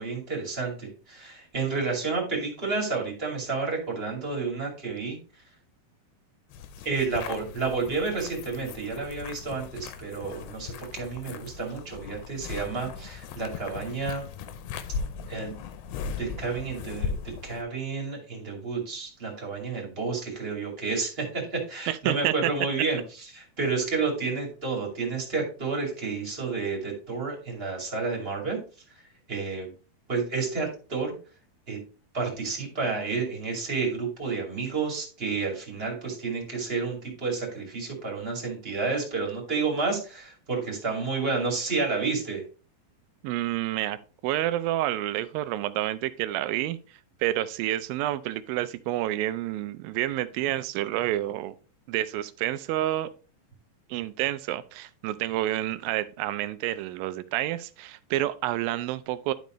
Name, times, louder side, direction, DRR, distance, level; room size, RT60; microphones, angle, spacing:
voice 1, 0.0-5.2 6.8-14.2 15.3-15.6 16.2-28.6 29.3-29.7 30.1-31.1 31.7-31.8 32.1-42.4, right 4 dB, 20° right, 2.1 m, -30 dB
sound 1, 6.5-17.6, left 6 dB, 90° left, 2.6 m, -38 dB
voice 2, 21.9-22.3 43.2-44.0 44.2-46.8 47.2-51.6 51.9-53.1 53.9-59.3, right 14 dB, 80° right, 2.3 m, -29 dB
11.5 x 5.3 x 3.1 m
omnidirectional pair, 4.3 m